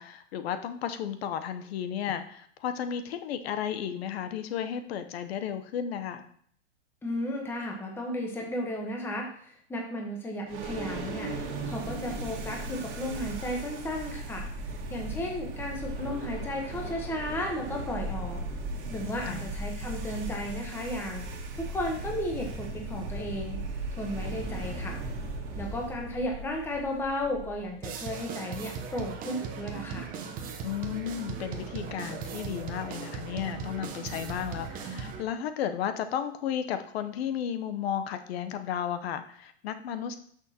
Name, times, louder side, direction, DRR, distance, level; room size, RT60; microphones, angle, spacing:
voice 1, 0.0-6.3 19.2-19.5 30.6-40.2, left 9 dB, 60° left, 10 dB, 0.8 m, -33 dB
voice 2, 7.0-11.3 11.7-14.5 14.9-18.4 18.9-21.2 21.6-23.6 24.0-25.0 25.6-30.1, left 1 dB, 5° left, 1 dB, 1.0 m, -34 dB
sound 1, 10.5-27.8, right 2 dB, 50° right, 1.9 m, -37 dB
sound 2, 27.8-35.2, right 6 dB, 25° right, 0.8 m, -38 dB
11.0 x 6.3 x 2.8 m, 0.62 s
hypercardioid pair, 140°, 35 cm